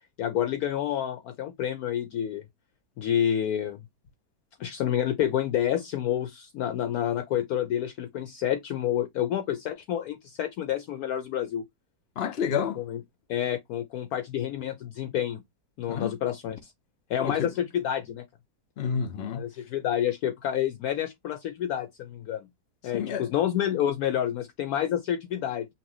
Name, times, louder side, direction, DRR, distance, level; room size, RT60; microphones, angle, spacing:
voice 1, 0.2-2.4 3.0-3.8 4.6-11.6 12.8-13.0 13.3-15.4 15.8-16.7 17.1-18.3 19.3-22.5 22.8-25.7, left 10 dB, 70° left, 1.0 m, -29 dB
voice 2, 12.2-12.8 15.9-16.1 17.2-17.5 18.8-19.4 22.9-23.2, left 7 dB, 45° left, 1.0 m, -29 dB
5.7 x 2.5 x 3.0 m
omnidirectional pair, 1.8 m